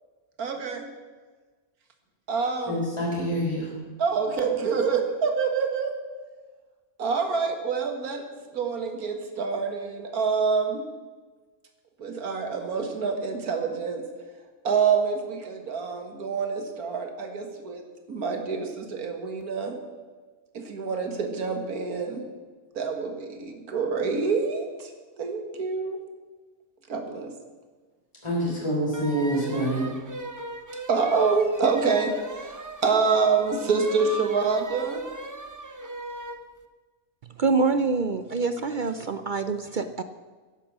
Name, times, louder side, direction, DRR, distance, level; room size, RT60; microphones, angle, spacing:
voice 1, 0.4-0.9 2.3-2.8 4.0-5.9 7.0-8.2 8.5-10.9 12.0-14.0 14.6-19.8 20.5-22.2 22.8-24.9 25.2-26.0 26.9-27.3 30.9-35.1, right 5 dB, 85° right, 5 dB, 2.0 m, -26 dB
voice 2, 2.7-3.7 28.2-29.9, right 1 dB, 20° left, -4 dB, 4.4 m, -26 dB
sound 1, 28.9-36.4, right 1 dB, 20° right, 0.6 m, -38 dB
voice 3, 37.4-40.0, right 4 dB, 65° right, 10 dB, 0.4 m, -25 dB
11.0 x 10.5 x 7.3 m, 1.4 s
omnidirectional pair, 1.5 m